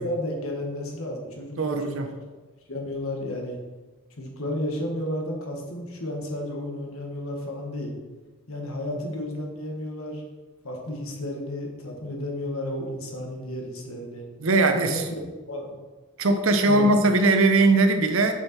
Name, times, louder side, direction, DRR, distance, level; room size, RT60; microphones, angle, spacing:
voice 1, 0.0-2.0 2.7-3.6 4.2-7.9 8.5-10.2 10.6-14.3 14.9-15.1 15.5-15.7 16.6-16.9, left 1 dB, 70° left, 2 dB, 1.5 m, -32 dB
voice 2, 1.6-2.1 14.4-15.1 16.2-18.3, right 2 dB, 60° right, 6 dB, 0.8 m, -20 dB
6.5 x 6.5 x 4.3 m, 1.3 s
head